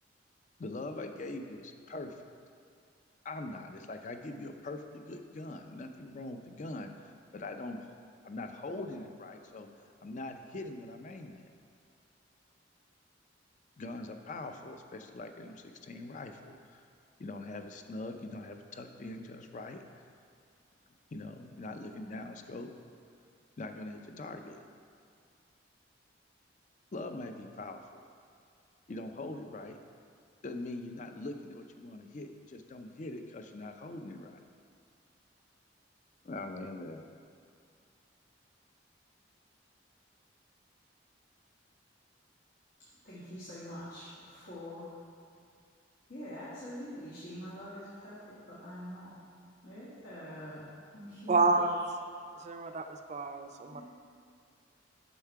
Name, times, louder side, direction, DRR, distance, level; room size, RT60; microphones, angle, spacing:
voice 1, 0.6-2.2 3.2-7.8 8.2-9.7 10.0-11.5 13.8-16.8 17.2-19.8 21.1-22.7 23.6-24.6 26.9-27.8 28.9-29.8 30.4-34.4 36.2-37.1, left 2 dB, 40° left, 6 dB, 0.4 m, -42 dB
voice 2, 43.0-45.0 46.1-49.1 49.6-50.7 50.9-51.5 53.7-53.8, equal, 75° left, -10 dB, 1.6 m, -44 dB
voice 3, 51.3-51.7 52.4-53.8, right 3 dB, 35° right, 6 dB, 0.4 m, -29 dB
7.0 x 5.6 x 4.6 m, 2.3 s
head